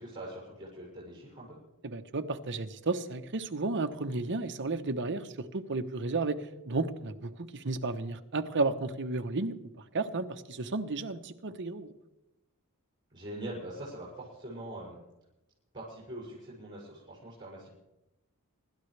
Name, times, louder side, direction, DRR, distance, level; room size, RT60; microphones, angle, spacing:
voice 1, 0.0-1.6 13.1-15.0 15.7-17.8, right 1 dB, 20° right, -6 dB, 6.5 m, -43 dB
voice 2, 1.8-9.5 9.9-11.9, right 3 dB, 55° right, 8 dB, 1.0 m, -33 dB
26.0 x 13.0 x 3.4 m, 0.94 s
head